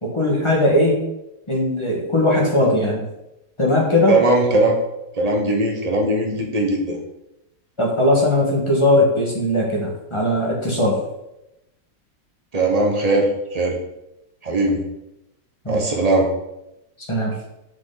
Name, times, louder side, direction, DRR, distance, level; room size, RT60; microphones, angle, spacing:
voice 1, 0.0-1.0 1.5-3.0 3.6-4.2 7.8-11.0 15.6-15.8 17.1-17.3, left 1 dB, 15° left, -3 dB, 1.4 m, -19 dB
voice 2, 4.1-4.8 5.2-7.0 12.5-13.8 14.4-14.8 15.7-16.3, right 2 dB, 30° right, 1 dB, 0.8 m, -19 dB
6.8 x 5.1 x 3.9 m, 0.90 s
omnidirectional pair, 1.9 m